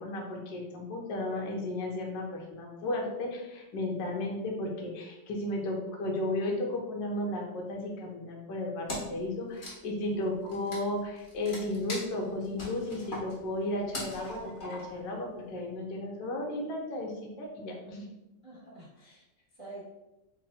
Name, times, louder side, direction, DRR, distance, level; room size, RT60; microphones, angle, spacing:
voice 1, 0.0-18.0, left 1 dB, 75° left, -1 dB, 1.4 m, -34 dB
Wood, 8.9-9.2 9.5-15.1, left 1 dB, 35° left, 0.9 m, -41 dB
voice 2, 18.4-19.9, right 2 dB, 40° right, -6 dB, 0.4 m, -48 dB
3.8 x 2.0 x 4.1 m, 0.98 s
omnidirectional pair, 2.0 m